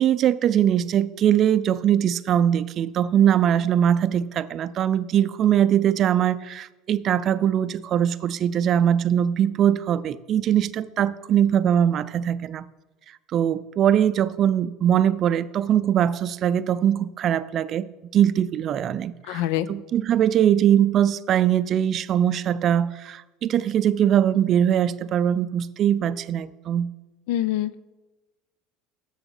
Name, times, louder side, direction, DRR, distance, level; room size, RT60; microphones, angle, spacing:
voice 1, 0.0-12.7 13.3-19.4 19.7-26.9, right 10 dB, 40° right, 16 dB, 0.4 m, -21 dB
voice 2, 19.3-19.7 27.3-27.8, left 13 dB, 80° left, 17 dB, 0.4 m, -25 dB
7.2 x 7.0 x 7.0 m, 1.1 s
supercardioid pair, 130°, 0 cm